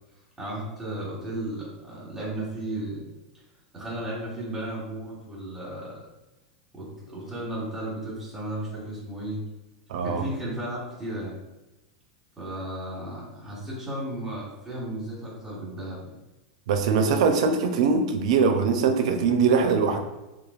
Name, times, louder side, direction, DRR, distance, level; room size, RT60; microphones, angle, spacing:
voice 1, 0.4-3.0 3.7-6.0 6.7-9.4 10.0-11.4 12.4-16.1, right 1 dB, 15° right, -7 dB, 1.1 m, -34 dB
voice 2, 9.9-10.2 16.7-20.0, right 5 dB, 70° right, 6 dB, 0.4 m, -22 dB
3.0 x 2.2 x 2.4 m, 1.0 s
supercardioid pair, 125°, 4 cm